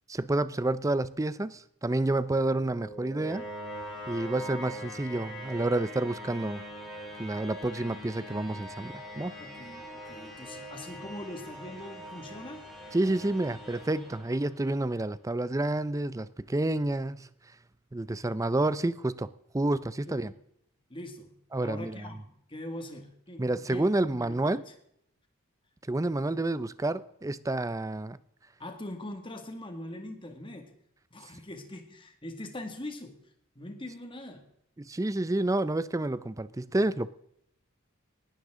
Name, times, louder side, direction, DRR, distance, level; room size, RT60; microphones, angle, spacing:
voice 1, 0.1-3.5 4.1-6.6 7.2-9.3 12.9-17.3 17.9-20.3 21.5-22.1 23.4-24.6 25.9-28.2 34.9-37.1, right 2 dB, 15° right, 0.5 m, -29 dB
sound 1, 1.9-14.9, equal, ahead, 3.5 m, -43 dB
voice 2, 9.4-12.7 20.1-20.4 20.9-24.7 28.6-30.7 31.1-33.2 33.6-34.5, left 1 dB, 25° left, 2.0 m, -42 dB
19.5 x 11.5 x 3.7 m
head